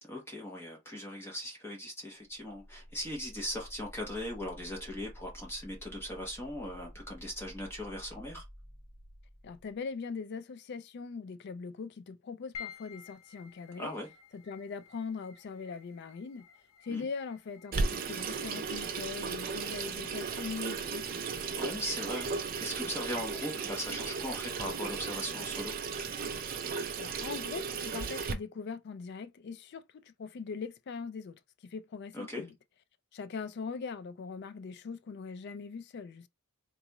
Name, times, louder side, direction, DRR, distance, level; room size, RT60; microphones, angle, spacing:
voice 1, 0.0-8.4 13.8-14.1 16.9-17.1 21.5-25.7 32.1-32.4, left 1 dB, 10° left, 0.9 m, -39 dB
sound 1, 2.3-9.9, equal, 10° right, 1.5 m, -51 dB
voice 2, 9.4-13.9 14.3-16.5 16.8-21.0 27.0-32.5 33.1-36.3, left 5 dB, 50° left, 0.3 m, -41 dB
sound 2, 12.5-27.0, left 7 dB, 70° left, 0.7 m, -55 dB
Water tap faucet / Sink (filling or washing), 17.7-28.3, right 5 dB, 40° right, 0.4 m, -35 dB
3.9 x 2.3 x 2.9 m
head